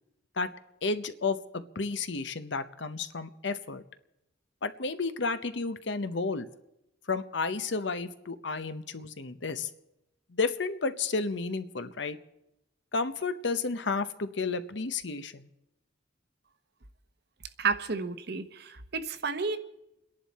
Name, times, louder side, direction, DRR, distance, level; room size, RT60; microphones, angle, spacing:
voice 1, 0.8-3.8 4.6-6.5 7.1-9.7 10.3-12.2 12.9-15.5, left 4 dB, 70° left, 12 dB, 0.9 m, -32 dB
voice 2, 17.6-19.6, right 4 dB, 60° right, 10 dB, 1.0 m, -31 dB
29.5 x 11.0 x 4.2 m, 0.91 s
head